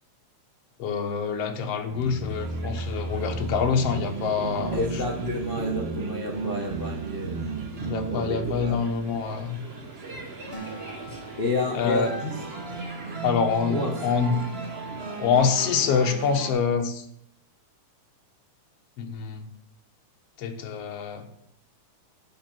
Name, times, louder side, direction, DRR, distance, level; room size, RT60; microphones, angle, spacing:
voice 1, 0.8-4.9 7.9-9.6 11.7-12.1 13.2-14.4 15.2-17.0 19.0-19.5 20.4-21.2, left 6 dB, 60° left, 5 dB, 2.0 m, -26 dB
sound 1, 1.9-16.5, right 3 dB, 45° right, 0.8 m, -34 dB
sound 2, 3.8-11.0, right 8 dB, 70° right, 2.3 m, -43 dB
voice 2, 4.7-7.4 8.1-8.8 11.4-12.3 13.7-13.9, left 2 dB, 90° left, 1 dB, 0.5 m, -30 dB
Acoustic guitar, 10.5-14.2, right 3 dB, 15° left, 1.2 m, -45 dB
11.0 x 6.4 x 7.6 m, 0.72 s
omnidirectional pair, 3.4 m